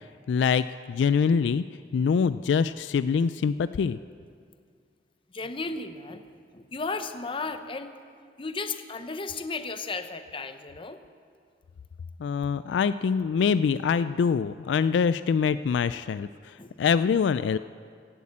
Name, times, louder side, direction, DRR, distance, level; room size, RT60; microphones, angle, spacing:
voice 1, 0.3-1.6 1.9-4.0 12.2-16.3 16.8-17.6, left 6 dB, 75° left, 14 dB, 0.3 m, -24 dB
voice 2, 5.3-6.2 6.5-8.0 8.4-11.0 16.6-16.7, left 3 dB, 30° left, 9 dB, 0.7 m, -34 dB
16.0 x 8.4 x 8.5 m, 2.2 s
head